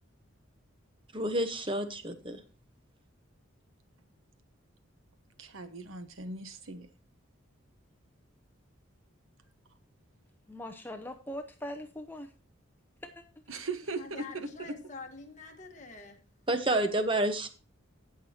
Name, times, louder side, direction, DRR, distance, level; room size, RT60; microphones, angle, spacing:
voice 1, 1.1-2.4 16.5-17.5, right 1 dB, 25° right, 1.0 m, -29 dB
voice 2, 5.4-6.9 13.5-14.7, right 3 dB, 85° right, 1.2 m, -39 dB
voice 3, 10.5-12.3 13.0-13.2, left 1 dB, 10° left, 0.6 m, -41 dB
voice 4, 13.9-16.2, left 4 dB, 35° left, 1.5 m, -46 dB
17.0 x 6.2 x 2.8 m
head